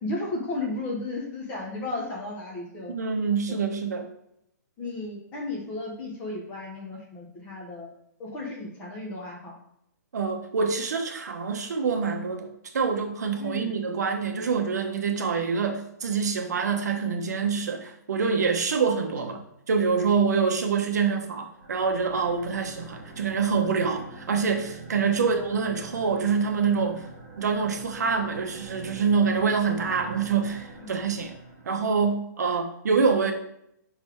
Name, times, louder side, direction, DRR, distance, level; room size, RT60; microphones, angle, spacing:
voice 1, 0.0-3.0 3.5-3.6 4.8-7.9 8.2-9.5 13.4-13.7 22.5-22.7 25.2-25.4 30.8-30.9 32.4-32.6, left 2 dB, 15° left, -2 dB, 1.1 m, -34 dB
voice 2, 2.9-4.1 10.1-12.5 12.7-19.4 19.7-27.1 27.4-31.3 31.7-33.3, right 5 dB, 60° right, 5 dB, 0.9 m, -26 dB
sound 1, 21.5-32.0, right 3 dB, 20° right, 1.9 m, -44 dB
5.4 x 4.0 x 4.5 m, 0.75 s
hypercardioid pair, 175°, 10 cm